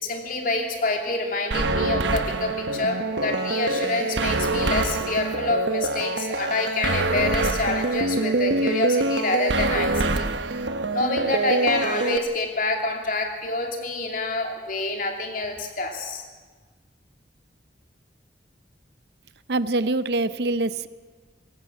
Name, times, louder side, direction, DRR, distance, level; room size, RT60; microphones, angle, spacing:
voice 1, 0.0-10.3 10.9-16.2, left 2 dB, 50° left, 3 dB, 2.8 m, -27 dB
sound 1, 1.5-12.2, right 2 dB, 85° right, 1.0 m, -25 dB
voice 2, 19.5-20.9, right 2 dB, 65° right, 15 dB, 0.7 m, -24 dB
20.5 x 16.5 x 7.6 m, 1.4 s
head